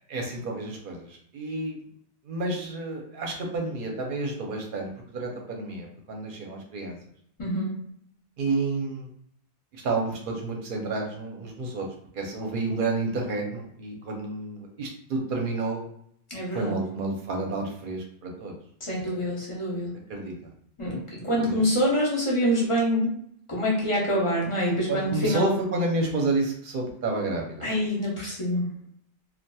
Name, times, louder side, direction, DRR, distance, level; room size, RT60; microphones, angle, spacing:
voice 1, 0.1-1.8 2.2-7.0 8.4-9.1 9.7-11.9 12.1-15.9 16.5-18.5 19.0-19.3 20.1-20.5 20.8-21.6 24.9-27.7, right 2 dB, 60° right, 1 dB, 0.7 m, -30 dB
voice 2, 7.4-7.8 16.3-16.7 18.8-19.9 20.8-23.1 23.5-25.5 27.6-28.6, equal, 35° left, -5 dB, 0.7 m, -26 dB
2.7 x 2.4 x 2.2 m, 0.68 s
omnidirectional pair, 1.1 m